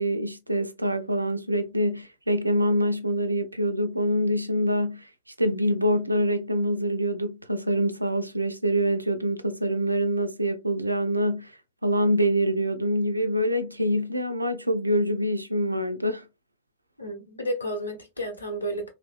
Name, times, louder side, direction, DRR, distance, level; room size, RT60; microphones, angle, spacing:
voice 1, 0.0-5.1 5.4-11.5 11.8-16.3, equal, 85° right, 0.3 m, -25 dB
voice 2, 17.0-18.9, equal, 80° left, 0.9 m, -32 dB
3.1 x 2.8 x 2.4 m
figure-of-eight pair, 90°, 0 cm